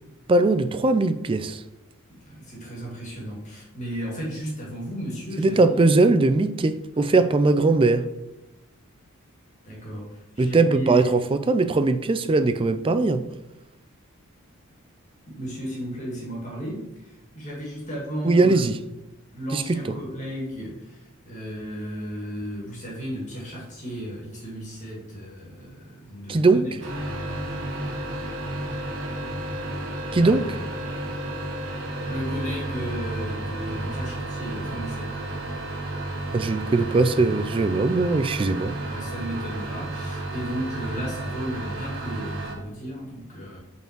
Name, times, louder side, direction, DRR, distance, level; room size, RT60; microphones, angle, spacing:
voice 1, 0.3-1.6 5.4-8.1 10.4-13.2 18.2-18.7 19.5-19.8 26.3-26.7 30.1-30.4 36.3-38.8, right 3 dB, 25° right, 0.3 m, -20 dB
voice 2, 2.1-6.0 9.6-11.3 15.3-18.7 19.3-26.7 30.2-30.4 32.0-35.2 38.4-43.6, equal, 35° left, 2.2 m, -34 dB
sound 1, 26.8-42.5, right 1 dB, 60° right, 1.6 m, -32 dB
5.6 x 4.5 x 6.0 m
head